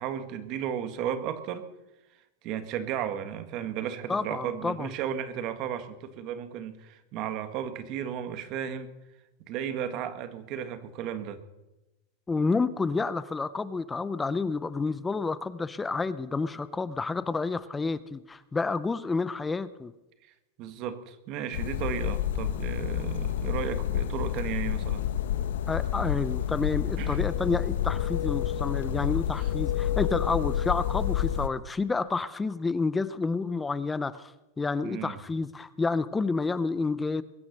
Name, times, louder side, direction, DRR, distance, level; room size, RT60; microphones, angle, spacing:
voice 1, 0.0-1.7 2.4-8.9 9.4-11.4 20.6-25.0 27.0-27.3 29.4-29.5 34.8-35.2, right 9 dB, 35° right, 10 dB, 1.5 m, -34 dB
voice 2, 4.1-4.9 12.3-19.9 25.7-37.2, left 4 dB, 10° left, 16 dB, 0.5 m, -29 dB
sound 1, 21.5-31.5, left 10 dB, 90° left, 1.1 m, -29 dB
22.0 x 9.5 x 6.5 m, 1.0 s
supercardioid pair, 170°, 0 cm